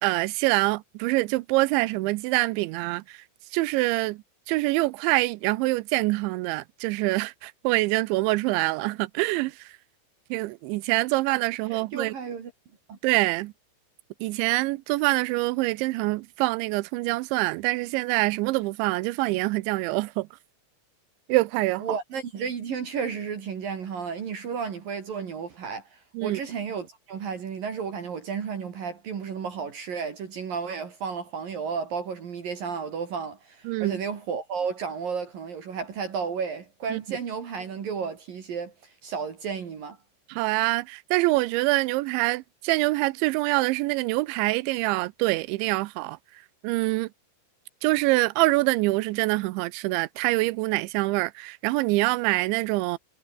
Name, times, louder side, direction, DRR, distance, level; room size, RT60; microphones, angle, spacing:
voice 1, 0.0-3.0 3.5-9.5 10.3-12.1 13.0-13.5 14.2-20.3 21.3-21.8 26.1-26.4 33.7-34.0 36.9-37.0 40.3-46.2 46.6-47.1 47.8-53.0, right 21 dB, 90° right, 3.1 m, -25 dB
voice 2, 11.7-12.5 12.9-13.0 21.8-40.0, right 6 dB, 55° right, 4.2 m, -33 dB
omnidirectional pair, 5.2 m